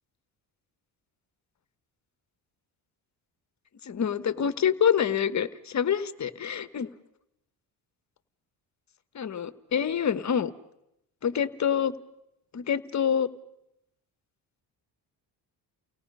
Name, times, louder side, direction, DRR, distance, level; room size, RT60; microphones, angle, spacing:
voice 1, 3.8-6.9 9.1-10.5 11.2-12.0 12.5-13.3, left 8 dB, 40° left, 14 dB, 1.1 m, -26 dB
30.0 x 17.5 x 5.5 m, 0.82 s
cardioid pair, 90°, 43 cm